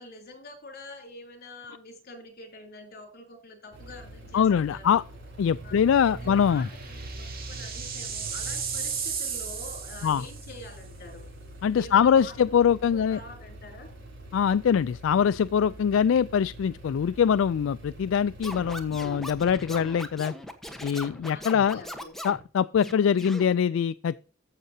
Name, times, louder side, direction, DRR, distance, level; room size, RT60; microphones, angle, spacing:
voice 1, 0.0-5.0 5.6-5.8 6.1-11.2 11.7-13.9 21.3-22.1, left 2 dB, 50° left, 3.3 m, -46 dB
sound 1, 3.7-20.9, right 1 dB, 65° right, 3.8 m, -44 dB
sound 2, 4.1-4.2 4.5-4.6 6.0-10.7, right 6 dB, 45° right, 2.4 m, -35 dB
voice 2, 4.3-5.0 5.4-6.7 10.0-10.3 11.6-13.2 14.3-20.3 20.8-21.8 22.2-24.2, left 7 dB, 70° left, 0.3 m, -23 dB
Scratching (performance technique), 18.4-22.4 22.8-23.5, equal, ahead, 1.2 m, -39 dB
14.5 x 6.6 x 2.8 m
head